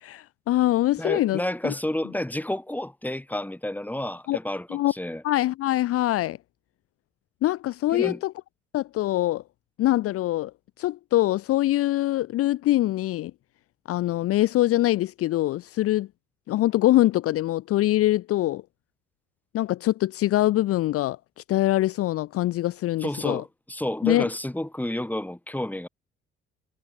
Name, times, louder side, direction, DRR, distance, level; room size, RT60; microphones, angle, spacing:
voice 1, 0.0-1.7 4.3-4.4 4.7-4.9 5.2-6.4 7.4-8.3 8.7-9.4 9.8-10.5 10.8-13.3 13.9-16.1 16.5-18.6 19.5-23.4 24.0-24.3, left 15 dB, 50° left, 0.7 m, -23 dB
voice 2, 1.0-5.2 7.9-8.2 23.0-25.9, left 1 dB, 5° left, 3.1 m, -30 dB
figure-of-eight pair, 50°, 31 cm